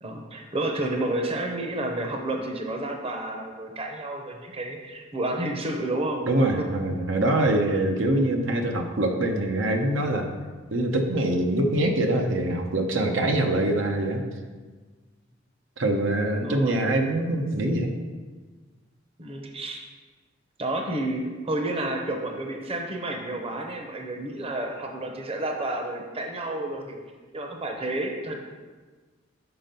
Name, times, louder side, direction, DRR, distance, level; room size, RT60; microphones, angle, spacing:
voice 1, 0.0-6.2 6.6-6.7 16.4-16.7 19.2-19.8 20.6-27.0 27.3-28.4, right 1 dB, 30° right, 3 dB, 0.7 m, -30 dB
voice 2, 6.2-10.3 10.7-14.2 15.8-17.9, right 1 dB, 80° right, 3 dB, 0.7 m, -24 dB
5.9 x 5.2 x 5.2 m, 1.4 s
head